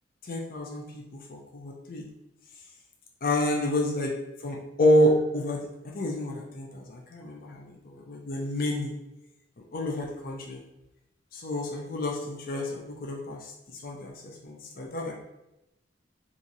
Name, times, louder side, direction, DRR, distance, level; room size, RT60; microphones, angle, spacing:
voice 1, 0.3-2.1 3.2-4.1 4.4-5.7 5.9-8.9 9.7-10.6 11.3-13.5 13.8-15.1, left 1 dB, 50° left, 0 dB, 0.5 m, -28 dB
2.9 x 2.5 x 3.8 m, 0.93 s
head